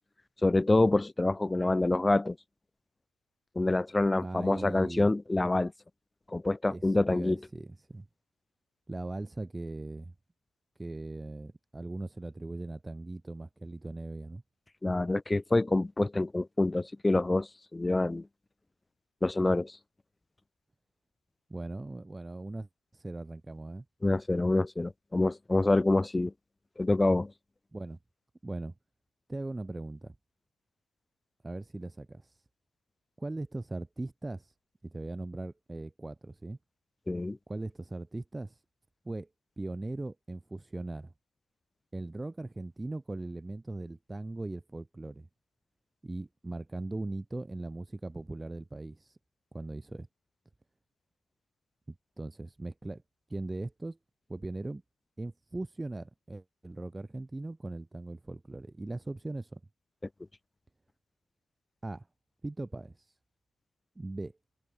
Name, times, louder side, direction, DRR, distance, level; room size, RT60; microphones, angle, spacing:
voice 1, 0.4-2.4 3.6-5.7 6.3-7.4 14.8-18.2 19.2-19.8 24.0-26.3 26.8-27.3 37.1-37.4, left 2 dB, 15° left, 0.3 m, -26 dB
voice 2, 4.2-5.1 6.7-8.1 8.9-10.1 10.8-14.4 21.5-23.8 27.7-28.0 28.4-28.7 29.3-30.1 31.4-32.4 33.2-34.5 34.8-36.6 37.5-38.6 39.0-39.3 39.6-41.1 41.9-45.3 46.0-49.2 49.5-50.1 52.2-53.0 53.3-54.0 54.3-54.8 55.2-59.6 61.8-62.1 62.4-63.1 64.0-64.3, right 2 dB, 15° right, 0.9 m, -39 dB
cardioid pair, 90°, 0 cm